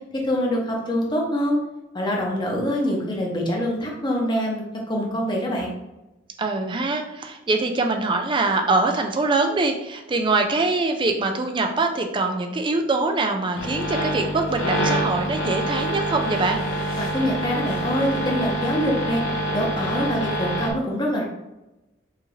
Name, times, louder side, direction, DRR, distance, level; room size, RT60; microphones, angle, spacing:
voice 1, 0.2-1.6 1.9-5.7 17.0-19.2 19.5-21.2, equal, 25° left, -1 dB, 0.8 m, -25 dB
voice 2, 6.4-16.6, right 3 dB, 25° right, 4 dB, 0.4 m, -23 dB
sound 1, 13.5-20.7, right 1 dB, 80° left, 1.0 m, -26 dB
4.8 x 2.5 x 3.1 m, 0.98 s
head